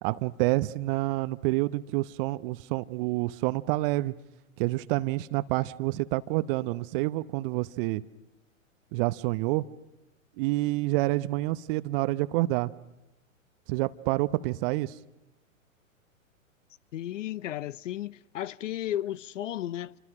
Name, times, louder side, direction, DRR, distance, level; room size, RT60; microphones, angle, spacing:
voice 1, 0.0-4.1 4.6-8.0 8.9-9.7 10.4-12.7 13.7-14.9, right 19 dB, 40° right, 1.0 m, -28 dB
voice 2, 16.9-20.0, left 12 dB, 65° left, 0.8 m, -34 dB
29.0 x 25.0 x 6.1 m
hypercardioid pair, 110°, 41 cm